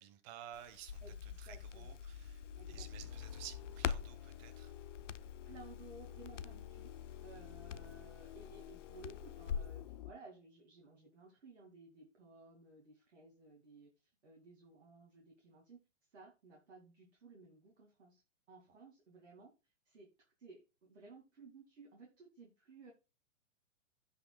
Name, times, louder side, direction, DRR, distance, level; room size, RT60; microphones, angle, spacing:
voice 1, 0.0-4.7, right 10 dB, 35° right, 1.6 m, -53 dB
Crackle, 0.5-9.8, left 7 dB, 70° left, 0.7 m, -45 dB
voice 2, 1.0-2.0 2.6-3.1 5.4-15.8 16.1-20.1 20.4-22.9, right 3 dB, 60° right, 2.5 m, -58 dB
sound 1, 2.1-10.1, left 11 dB, 35° left, 0.4 m, -51 dB
16.0 x 5.6 x 2.3 m
figure-of-eight pair, 110°, 37 cm